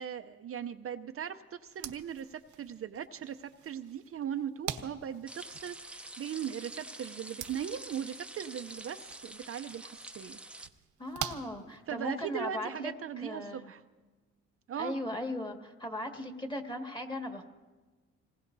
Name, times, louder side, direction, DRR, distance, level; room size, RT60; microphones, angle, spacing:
voice 1, 0.0-10.4 11.9-13.8 14.7-14.9, right 8 dB, 50° right, 8 dB, 0.6 m, -39 dB
sound 1, 1.7-12.3, right 10 dB, 85° right, 1.1 m, -46 dB
sound 2, 5.3-10.7, right 1 dB, 5° right, 0.7 m, -47 dB
voice 2, 11.0-13.7 14.8-17.4, left 1 dB, 15° left, 3 dB, 1.9 m, -38 dB
26.5 x 19.0 x 2.7 m, 1.3 s
cardioid pair, 90°, 30 cm